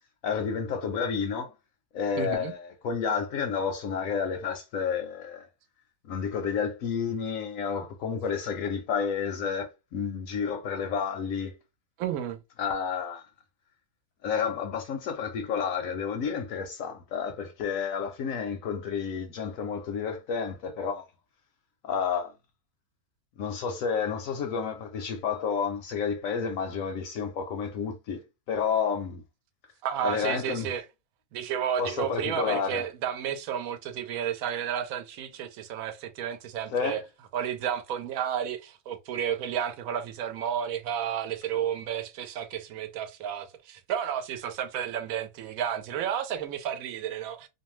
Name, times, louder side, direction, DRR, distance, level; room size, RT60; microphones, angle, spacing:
voice 1, 0.2-1.5 1.9-5.5 6.0-11.5 12.6-13.3 14.2-21.1 21.8-22.3 23.4-29.2 30.0-30.7 31.8-32.8 36.7-37.0, left 6 dB, 70° left, 0.9 m, -30 dB
voice 2, 2.2-2.5 12.0-12.4 29.8-30.8 31.3-37.0 37.3-47.5, right 9 dB, 70° right, 1.0 m, -32 dB
2.6 x 2.2 x 3.0 m
omnidirectional pair, 1.7 m